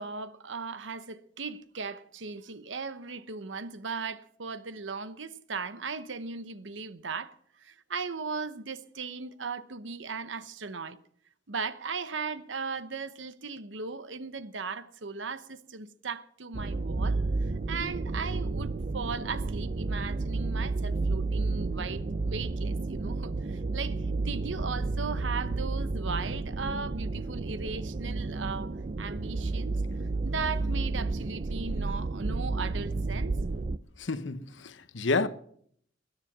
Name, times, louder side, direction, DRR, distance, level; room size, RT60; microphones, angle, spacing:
voice 1, 0.0-11.0 11.5-17.2 17.7-29.8 30.2-33.4, right 4 dB, 75° right, 1.0 m, -37 dB
sound 1, 16.5-33.8, right 3 dB, 40° right, 0.5 m, -31 dB
voice 2, 34.0-35.3, left 3 dB, 70° left, 0.9 m, -30 dB
20.5 x 9.9 x 6.1 m
head